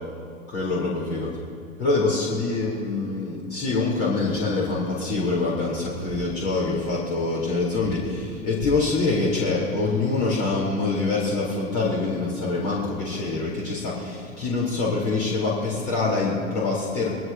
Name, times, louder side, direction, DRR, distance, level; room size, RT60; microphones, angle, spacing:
voice 1, 0.5-1.3 1.8-17.1, left 3 dB, 45° left, -4 dB, 4.2 m, -25 dB
25.0 x 18.5 x 2.9 m, 2.6 s
figure-of-eight pair, 95°, 41 cm